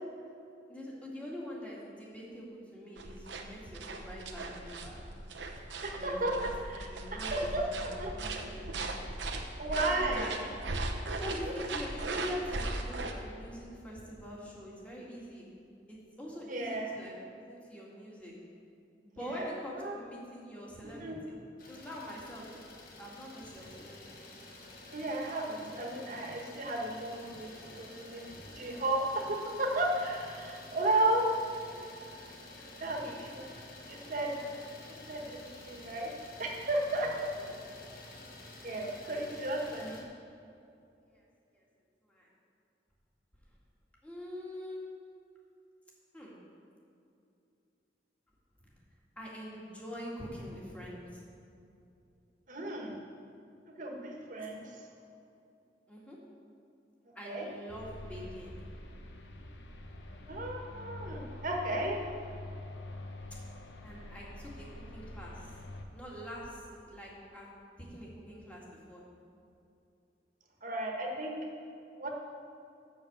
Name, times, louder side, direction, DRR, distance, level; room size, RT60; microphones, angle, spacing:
voice 1, 0.7-5.0 6.0-6.5 6.9-8.7 8.9-9.3 9.7-10.3 11.1-15.4 15.9-17.1 17.5-18.3 19.0-21.1 21.7-22.5 23.0-24.4 32.5-33.5 34.4-34.5 37.4-37.5 39.0-40.0 41.1-41.3 41.5-41.6 42.0-42.3 44.0-44.8 46.1-46.3 48.6-48.7 49.2-51.2 55.9-56.2 57.2-58.5 63.8-65.6 65.9-67.5 67.8-69.0, equal, 10° left, -5 dB, 1.9 m, -44 dB
sound 1, 3.0-13.1, right 2 dB, 85° right, 0.9 m, -38 dB
voice 2, 5.8-6.3 6.8-8.1 9.6-10.4 10.9-11.2 11.5-11.6 16.5-16.9 19.4-19.5 19.8-19.9 20.8-21.2 24.9-28.2 28.5-31.2 32.8-33.4 33.9-34.3 35.1-36.1 36.4-37.3 38.6-40.0 52.5-53.0 53.8-54.6 57.2-57.5 60.3-62.0 70.6-71.4 71.9-72.1, right 2 dB, 45° right, 0 dB, 1.5 m, -34 dB
Idling, 21.6-40.0, left 2 dB, 55° left, 1.2 m, -50 dB
sound 2, 57.7-65.8, left 1 dB, 80° left, 0.9 m, -45 dB
7.9 x 6.8 x 7.9 m, 2.7 s
head